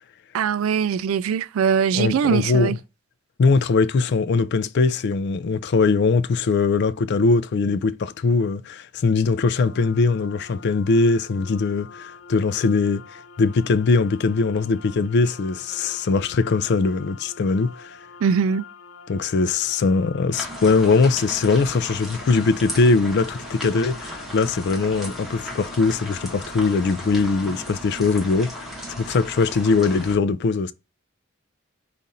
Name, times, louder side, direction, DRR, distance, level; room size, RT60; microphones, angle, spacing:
voice 1, 0.3-2.8 18.2-18.6, right 7 dB, 80° right, 0.3 m, -21 dB
voice 2, 1.9-2.8 3.4-18.0 19.1-28.7 29.0-30.7, left 4 dB, 55° left, 0.4 m, -21 dB
sound 1, 9.5-27.8, left 5 dB, 90° left, 0.7 m, -45 dB
sound 2, 20.3-30.2, equal, ahead, 1.2 m, -36 dB
5.2 x 2.5 x 4.0 m
head